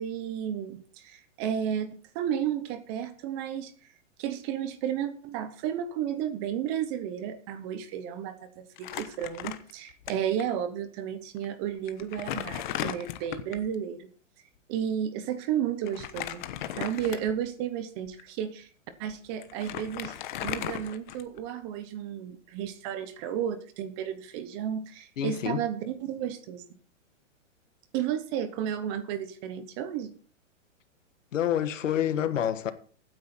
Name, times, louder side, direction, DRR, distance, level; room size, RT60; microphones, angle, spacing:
voice 1, 0.0-1.9 2.1-3.7 4.2-14.1 14.7-16.4 16.8-18.7 19.0-26.6 27.9-30.1, right 9 dB, 20° right, 0.9 m, -32 dB
Crumpling crinkling, 8.8-10.1 10.4-10.5 11.4-11.5 11.9-13.7 15.9-17.5 18.1-18.2 19.1-19.2 19.4-21.5, left 11 dB, 40° left, 1.1 m, -36 dB
voice 2, 25.2-25.6 31.3-32.7, left 10 dB, 75° left, 1.6 m, -27 dB
16.0 x 9.5 x 4.3 m
hypercardioid pair, 165°, 38 cm